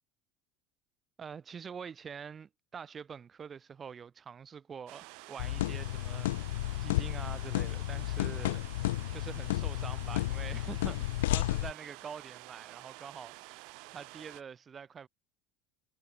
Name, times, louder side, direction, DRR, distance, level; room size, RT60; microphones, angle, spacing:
voice 1, 1.2-8.7 9.1-15.1, right 6 dB, 30° right, 3.3 m, -46 dB
sound 1, 4.9-14.4, right 31 dB, 70° right, 5.8 m, -50 dB
sound 2, 5.4-11.7, left 16 dB, 85° left, 0.5 m, -32 dB
hypercardioid pair, 90°, 0 cm